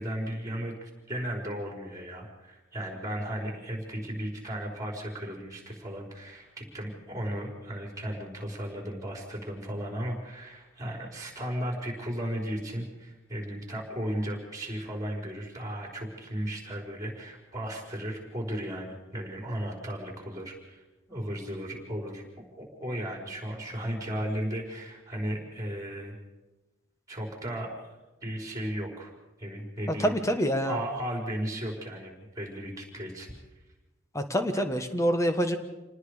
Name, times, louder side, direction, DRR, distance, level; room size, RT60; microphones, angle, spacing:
voice 1, 0.0-26.1 27.1-27.7 28.2-29.1 29.4-30.1 30.6-33.3, equal, 15° right, 1 dB, 4.7 m, -35 dB
voice 2, 29.9-30.8 34.1-35.6, equal, 15° left, 7 dB, 1.4 m, -26 dB
28.0 x 19.5 x 5.0 m, 1.1 s
head